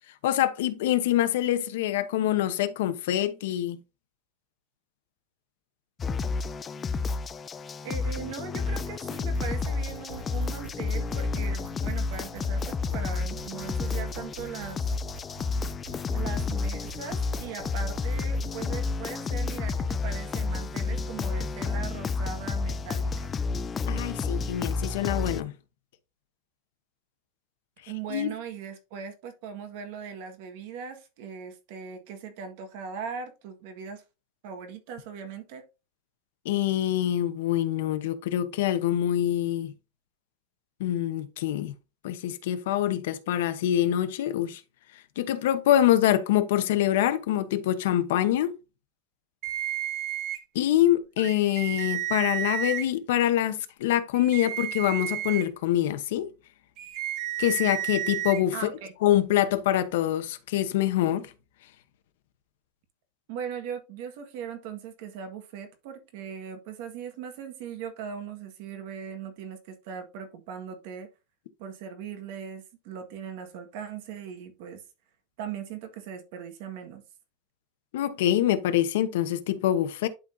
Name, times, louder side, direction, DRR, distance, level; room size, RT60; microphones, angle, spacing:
voice 1, 0.2-3.8 23.9-25.5 28.1-28.3 36.4-39.7 40.8-41.7 42.0-44.6 45.2-48.5 50.5-56.3 57.4-58.7 59.0-61.3 77.9-80.1, left 12 dB, 75° left, 0.9 m, -25 dB
sound 1, 6.0-25.4, left 4 dB, 15° left, 0.3 m, -30 dB
voice 2, 7.8-14.9 16.1-23.3 27.9-34.0 34.4-35.6 58.5-58.9 63.3-71.1 71.6-74.8 75.4-77.0, right 7 dB, 55° right, 1.6 m, -39 dB
sound 2, 9.2-18.7, right 2 dB, 75° right, 2.9 m, -44 dB
sound 3, 49.4-50.4 51.2-52.8 54.1-55.4 56.8-58.4, right 11 dB, 35° right, 1.0 m, -32 dB
11.5 x 4.0 x 2.6 m
supercardioid pair, 175°, 0 cm